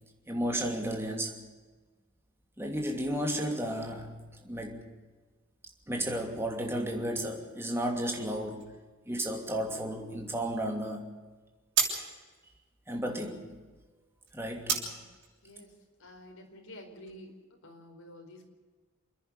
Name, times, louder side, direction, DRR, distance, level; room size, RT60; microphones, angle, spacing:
voice 1, 0.3-1.4 2.6-4.8 5.9-8.7 9.1-11.1 12.9-13.6 14.3-14.9, right 1 dB, 10° right, 2.8 m, -33 dB
sound 1, 8.6-17.2, right 6 dB, 55° right, 7.5 m, -38 dB
voice 2, 14.7-15.0 15.4-15.7 16.0-17.3 17.6-18.5, left 1 dB, 75° left, 4.7 m, -50 dB
29.0 x 10.5 x 9.8 m
head